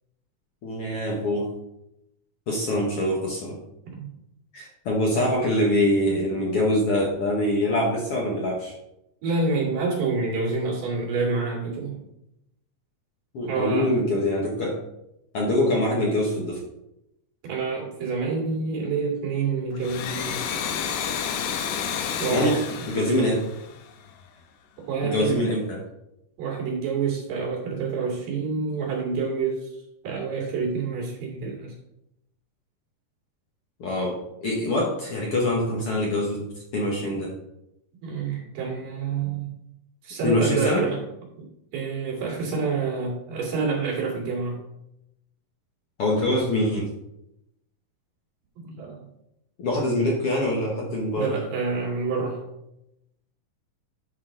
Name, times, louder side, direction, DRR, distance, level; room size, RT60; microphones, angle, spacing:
voice 1, 0.6-1.5 2.5-3.6 4.5-8.7 13.3-14.8 15.3-16.6 22.3-22.6 22.9-23.4 25.0-25.8 33.8-36.5 36.7-37.3 40.2-40.9 46.0-46.9 49.6-51.4, left 1 dB, 55° left, -2 dB, 1.7 m, -24 dB
voice 2, 9.2-12.0 13.5-13.9 17.4-20.4 22.2-22.6 24.8-25.5 26.4-29.7 30.0-31.7 38.0-39.5 40.0-41.0 41.4-41.5 41.7-44.6 48.6-49.1 51.2-52.4, right 4 dB, 75° right, -3 dB, 4.0 m, -27 dB
Domestic sounds home sounds, 19.7-24.2, left 7 dB, 80° left, 2.3 m, -30 dB
10.5 x 5.6 x 3.8 m, 0.85 s
omnidirectional pair, 3.8 m